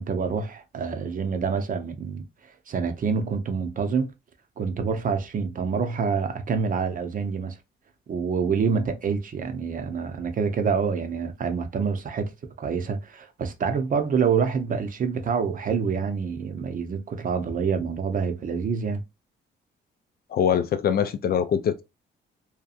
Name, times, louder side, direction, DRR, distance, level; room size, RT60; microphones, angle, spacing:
voice 1, 0.0-2.2 2.7-4.1 4.6-7.6 8.1-12.3 12.6-19.0, right 5 dB, 45° right, 0.6 m, -27 dB
voice 2, 20.3-21.8, left 8 dB, 50° left, 0.4 m, -23 dB
2.7 x 2.3 x 2.4 m
cardioid pair, 90°, 20 cm